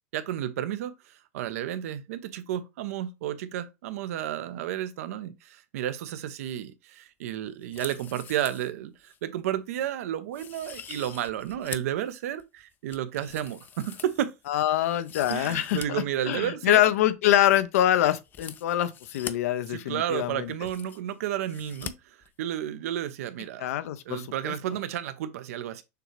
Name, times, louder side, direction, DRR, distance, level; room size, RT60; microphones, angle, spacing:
voice 1, 0.1-14.3 15.3-16.8 19.7-23.7 24.1-25.8, right 11 dB, 75° right, 0.7 m, -32 dB
sound 1, 7.6-8.7 9.1-9.2 9.7-9.9 10.3-12.0 12.4-14.5 14.9-15.9 16.1-16.2 18.2-19.3 20.1-20.2 20.4-21.1 21.5-21.9 22.2-22.3, left 8 dB, 25° left, 0.4 m, -43 dB
voice 2, 14.5-20.5 23.6-24.5, left 13 dB, 75° left, 0.6 m, -25 dB
6.7 x 2.5 x 3.2 m
supercardioid pair, 130°, 8 cm